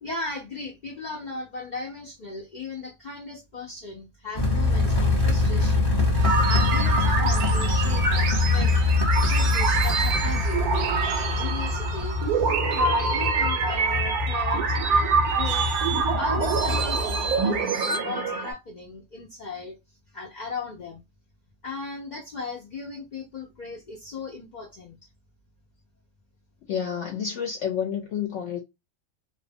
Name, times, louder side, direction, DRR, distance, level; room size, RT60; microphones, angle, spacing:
voice 1, 0.0-6.0 6.5-8.8 9.2-15.7 16.1-19.8 20.1-21.0 21.6-25.0, left 3 dB, 85° left, 0.4 m, -37 dB
sound 1, 4.3-17.6, left 3 dB, 25° left, 0.6 m, -24 dB
sound 2, 6.1-7.1 9.1-10.4 10.9-11.7 15.2-18.0, right 6 dB, 60° right, 0.6 m, -33 dB
sound 3, 6.2-18.5, right 4 dB, 90° right, 1.2 m, -26 dB
voice 2, 26.7-28.6, left 8 dB, 65° left, 0.8 m, -29 dB
2.7 x 2.1 x 2.6 m
omnidirectional pair, 1.5 m